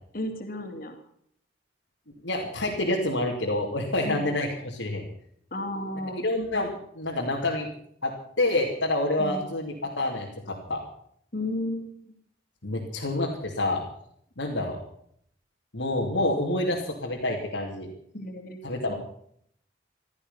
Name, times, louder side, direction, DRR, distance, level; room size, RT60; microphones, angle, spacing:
voice 1, 0.1-1.0 4.0-4.3 5.5-6.3 9.2-9.4 11.3-11.9 18.1-18.6 18.9-19.0, left 1 dB, 50° left, 4 dB, 2.9 m, -33 dB
voice 2, 2.2-5.0 6.2-7.7 8.0-10.8 12.6-13.8 14.4-14.8 15.7-17.9 18.6-18.9, left 1 dB, 80° left, -2 dB, 3.0 m, -28 dB
16.5 x 13.5 x 5.8 m, 0.67 s
head